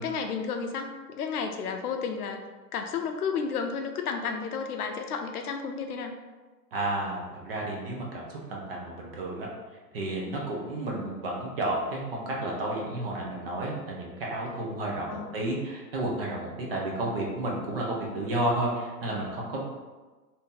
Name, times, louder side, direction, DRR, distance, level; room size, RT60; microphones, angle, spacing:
voice 1, 0.0-2.4 2.7-6.1 15.1-15.5, left 5 dB, 65° left, 5 dB, 0.5 m, -32 dB
voice 2, 6.7-9.5 9.9-19.6, right 1 dB, 35° right, -2 dB, 0.6 m, -31 dB
2.8 x 2.7 x 3.7 m, 1.3 s
hypercardioid pair, 155°, 49 cm